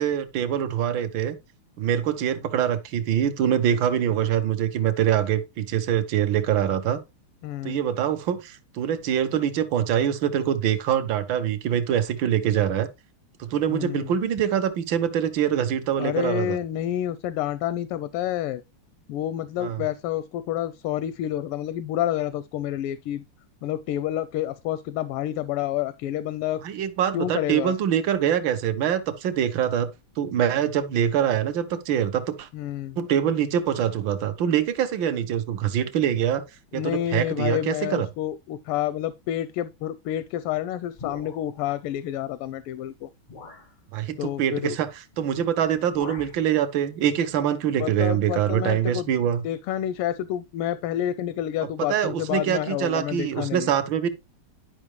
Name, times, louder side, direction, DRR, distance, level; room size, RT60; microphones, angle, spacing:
voice 1, 0.0-1.4 1.8-7.0 7.6-12.9 13.4-16.6 19.6-19.8 26.6-29.9 30.2-32.5 33.0-36.4 36.7-38.1 43.9-44.9 45.2-49.4 51.9-54.1, right 9 dB, 65° right, 1.5 m, -24 dB
voice 2, 7.4-7.8 13.7-14.1 16.0-18.6 19.1-23.2 23.6-26.6 27.1-27.7 32.5-33.0 36.7-43.1 44.2-44.8 47.8-49.1 49.4-53.7, left 12 dB, 85° left, 1.5 m, -29 dB
sound 1, 41.0-41.7 42.6-42.7 43.3-43.7 45.1-45.4 45.6-46.5, left 4 dB, 45° left, 0.6 m, -43 dB
11.0 x 5.4 x 3.1 m
omnidirectional pair, 2.4 m